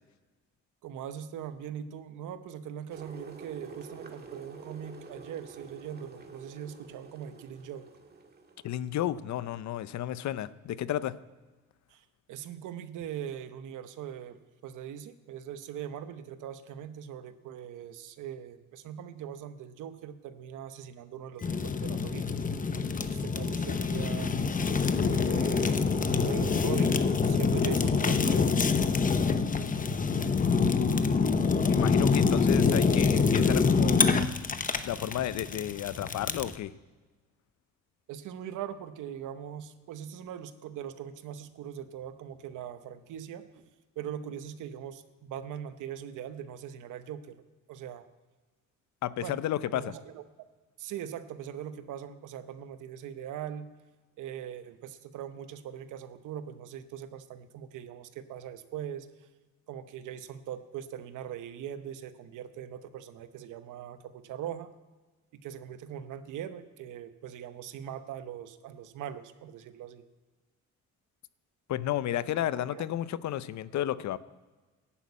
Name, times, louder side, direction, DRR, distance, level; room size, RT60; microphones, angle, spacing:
voice 1, 0.8-7.9 11.9-22.4 23.0-24.3 25.1-27.0 27.2-28.8 38.1-43.7 44.0-47.4 47.7-48.1 49.2-49.4 49.7-50.2 50.8-53.7 54.2-59.3 59.7-64.7 65.4-70.1 72.5-72.8, right 9 dB, 85° right, 11 dB, 1.0 m, -41 dB
sound 1, 2.9-9.0, right 4 dB, 35° right, 1.7 m, -48 dB
voice 2, 8.6-11.1 30.6-31.0 31.7-34.0 34.8-36.7 49.0-49.9 71.7-74.2, left 12 dB, 65° left, 16 dB, 0.6 m, -32 dB
Fire, 21.4-36.6, left 5 dB, 25° left, 0.8 m, -26 dB
11.5 x 8.1 x 8.5 m, 1.3 s
cardioid pair, 90°, 30 cm